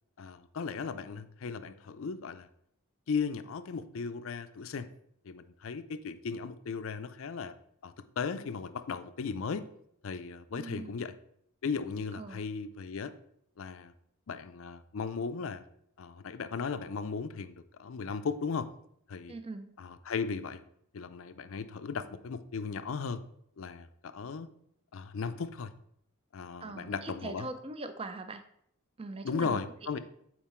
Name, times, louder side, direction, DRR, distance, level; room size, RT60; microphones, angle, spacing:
voice 1, 0.2-2.5 3.1-4.9 5.2-7.5 7.8-9.7 10.0-11.1 11.6-13.1 13.6-13.9 14.3-15.6 16.0-18.7 19.1-19.3 19.8-20.6 20.9-23.2 23.6-24.5 24.9-25.7 26.3-27.5 29.2-30.0, left 5 dB, 65° left, 11 dB, 0.5 m, -36 dB
voice 2, 10.5-11.1 12.2-12.4 19.3-19.7 26.6-28.4 29.0-29.6, right 2 dB, 25° right, 9 dB, 0.4 m, -41 dB
7.4 x 4.4 x 4.4 m, 0.70 s
head